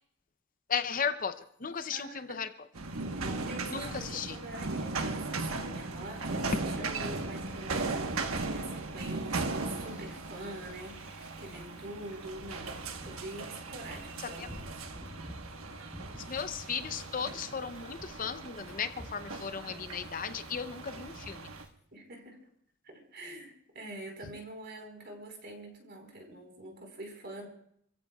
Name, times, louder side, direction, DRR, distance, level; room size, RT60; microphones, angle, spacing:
voice 1, 0.7-2.5 3.7-4.4 14.2-14.5 16.2-21.5, left 6 dB, 40° left, 10 dB, 0.6 m, -36 dB
voice 2, 1.9-2.4 3.1-15.0 21.9-22.4 22.8-27.5, right 1 dB, 50° right, 2 dB, 4.5 m, -45 dB
sound 1, 2.7-21.6, right 3 dB, 85° right, 1.3 m, -38 dB
Wind / Ocean, 5.9-21.7, equal, 10° right, 3.3 m, -52 dB
29.0 x 15.0 x 2.4 m, 0.69 s
head